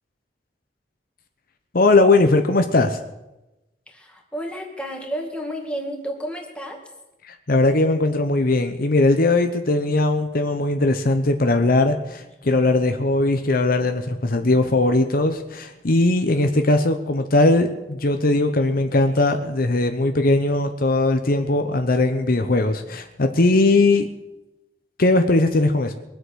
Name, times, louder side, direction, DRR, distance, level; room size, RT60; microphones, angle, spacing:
voice 1, 1.7-3.0 7.3-24.1 25.0-25.9, left 2 dB, 55° left, 6 dB, 0.9 m, -19 dB
voice 2, 3.9-6.8, equal, 5° left, 1 dB, 2.3 m, -31 dB
22.5 x 8.2 x 6.3 m, 0.99 s
head